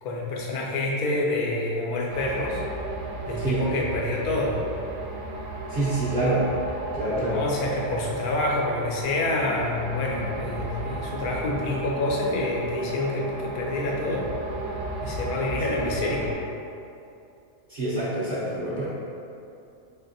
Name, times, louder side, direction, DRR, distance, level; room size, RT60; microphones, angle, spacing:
voice 1, 0.0-2.6 3.2-4.6 7.1-14.3 15.0-16.3, left 2 dB, 85° left, -2 dB, 1.2 m, -27 dB
sound 1, 2.1-16.3, right 2 dB, 75° right, 1.1 m, -34 dB
voice 2, 5.7-6.5 6.9-7.4 17.7-18.9, right 2 dB, 45° right, -10 dB, 0.7 m, -26 dB
4.3 x 3.3 x 2.6 m, 2.6 s
omnidirectional pair, 1.6 m